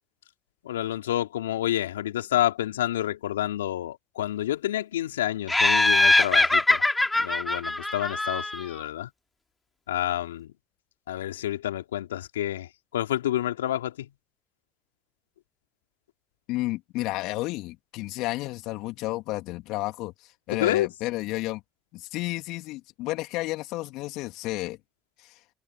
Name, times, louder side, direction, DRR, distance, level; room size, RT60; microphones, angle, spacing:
voice 1, 0.6-6.8 7.2-9.1 9.9-10.5 11.1-14.1 20.5-20.9, left 12 dB, 85° left, 3.3 m, -29 dB
Laughter, 5.5-8.8, left 2 dB, 15° left, 3.0 m, -22 dB
voice 2, 16.5-21.6 21.9-24.8 25.2-25.4, left 19 dB, 70° left, 3.2 m, -32 dB
hypercardioid pair, 50°, 0 cm